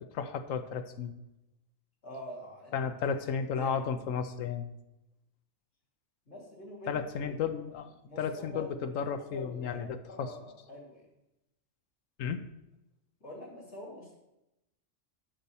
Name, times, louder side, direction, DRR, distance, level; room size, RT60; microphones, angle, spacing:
voice 1, 0.1-1.1 2.7-4.7 6.9-10.3 12.2-12.4, left 6 dB, 90° left, 8 dB, 1.1 m, -33 dB
voice 2, 2.0-2.7 3.1-3.2 3.5-3.7 6.3-7.5 8.0-8.8 9.2-9.8 10.1-11.0 13.2-14.1, left 1 dB, 60° left, -5 dB, 3.2 m, -45 dB
11.5 x 4.2 x 7.0 m, 0.89 s
omnidirectional pair, 1.3 m